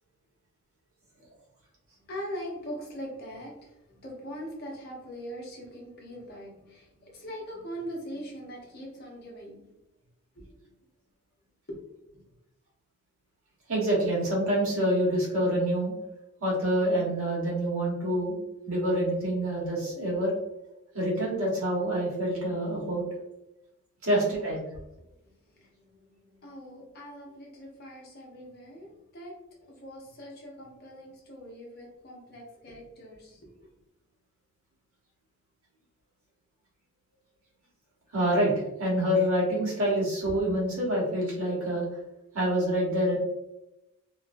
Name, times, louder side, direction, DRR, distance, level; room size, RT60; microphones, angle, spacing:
voice 1, 2.0-9.7 10.3-10.8 12.0-12.3 24.9-29.4 29.7-33.7, equal, 45° left, -2 dB, 0.9 m, -42 dB
voice 2, 13.7-15.9 16.4-18.3 18.7-20.3 20.9-23.0 24.0-24.6 38.1-38.5 38.8-41.9 42.3-43.2, right 1 dB, 85° right, -5 dB, 1.4 m, -26 dB
2.9 x 2.6 x 2.6 m, 0.93 s
head